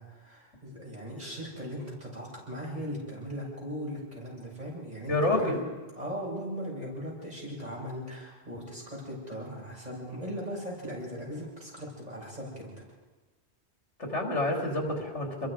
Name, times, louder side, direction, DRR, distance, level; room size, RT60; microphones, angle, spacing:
voice 1, 0.0-5.5 6.0-12.7, equal, 35° right, -4 dB, 7.6 m, -38 dB
voice 2, 5.1-5.6 14.0-15.5, left 1 dB, 85° left, 1 dB, 3.9 m, -28 dB
27.5 x 22.0 x 5.1 m, 1.2 s
omnidirectional pair, 1.2 m